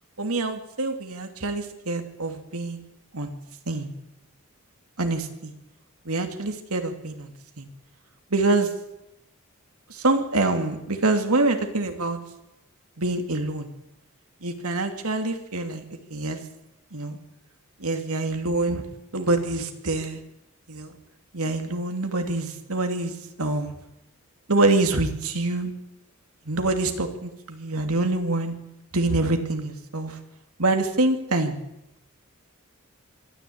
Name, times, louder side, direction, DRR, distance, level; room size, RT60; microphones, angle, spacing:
voice 1, 0.2-2.8 3.1-3.4 3.7-3.9 5.0-5.5 6.0-7.3 7.6-7.7 8.3-8.7 9.9-12.2 13.0-13.7 14.4-15.8 16.1-16.4 16.9-17.2 17.8-18.8 19.1-20.2 20.7-20.9 21.3-23.7 24.5-25.7 26.5-28.5 28.9-30.2 30.6-31.6, right 2 dB, 80° right, 5 dB, 2.7 m, -25 dB
23.5 x 13.5 x 8.7 m, 0.89 s
head